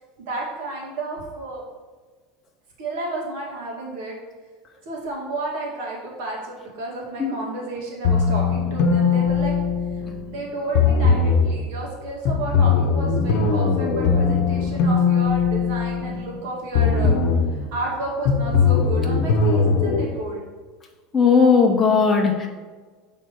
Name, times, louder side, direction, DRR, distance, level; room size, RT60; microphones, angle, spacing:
voice 1, 0.2-1.6 2.8-4.1 4.8-9.5 9.9-17.1 17.5-20.4, right 2 dB, 70° right, -3 dB, 2.0 m, -31 dB
sound 1, 8.0-10.3 10.7-11.6 12.3-16.4 16.7-17.6 18.3-20.0, left 5 dB, 60° left, 0.8 m, -20 dB
voice 2, 21.1-22.5, left 5 dB, 20° left, 0 dB, 0.6 m, -17 dB
7.8 x 3.6 x 4.4 m, 1.4 s
supercardioid pair, 145°, 0 cm